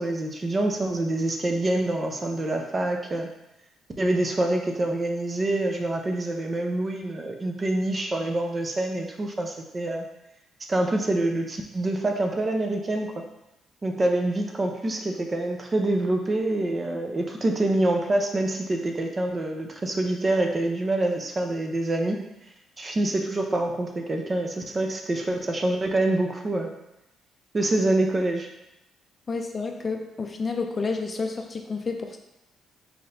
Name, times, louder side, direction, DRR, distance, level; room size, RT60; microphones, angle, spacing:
voice 1, 0.0-3.3 4.0-10.0 10.7-13.1 13.8-22.3 22.8-26.7 27.5-28.5, right 2 dB, 30° right, 3 dB, 0.6 m, -26 dB
voice 2, 29.3-32.2, left 4 dB, 30° left, 4 dB, 0.4 m, -30 dB
4.2 x 3.9 x 2.6 m, 0.88 s
cardioid pair, 90°, 0 cm